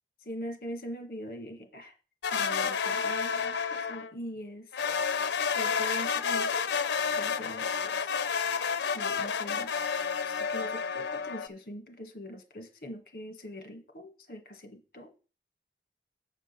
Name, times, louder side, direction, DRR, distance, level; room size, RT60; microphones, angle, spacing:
voice 1, 0.2-1.9 2.3-4.8 5.6-6.7 7.2-8.1 8.9-9.7 10.2-15.1, equal, 55° left, 7 dB, 1.6 m, -42 dB
sound 1, 2.2-4.1 4.7-11.5, left 6 dB, 85° left, 0.6 m, -30 dB
7.6 x 5.2 x 6.8 m, 0.35 s
head